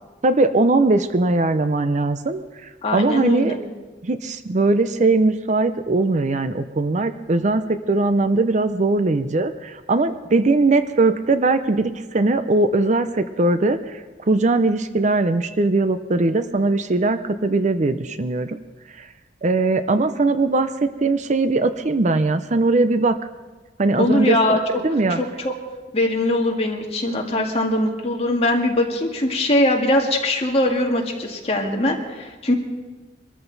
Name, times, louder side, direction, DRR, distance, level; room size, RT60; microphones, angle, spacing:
voice 1, 0.2-2.4 2.9-3.5 4.0-14.0 14.3-18.6 19.0-19.1 19.4-23.2 23.8-24.6 24.8-25.2, right 2 dB, 45° right, 11 dB, 0.6 m, -20 dB
voice 2, 2.8-3.6 24.0-24.6 25.1-25.5 25.9-32.5, left 1 dB, 35° left, 1 dB, 2.0 m, -21 dB
23.5 x 13.5 x 4.0 m, 1.2 s
head